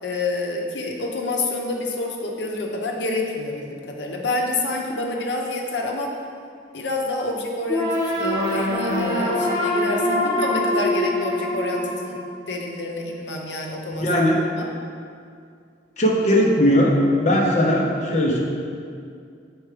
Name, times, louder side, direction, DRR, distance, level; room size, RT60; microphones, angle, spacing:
voice 1, 0.0-6.1 6.7-12.2 12.5-14.3 14.6-14.7, left 2 dB, 65° left, 0 dB, 0.9 m, -28 dB
sound 1, 7.7-12.7, left 1 dB, 20° right, 1.2 m, -24 dB
voice 2, 14.0-14.4 16.0-16.9 17.2-18.4, equal, 40° left, -2 dB, 0.9 m, -18 dB
6.2 x 4.5 x 5.0 m, 2.3 s
head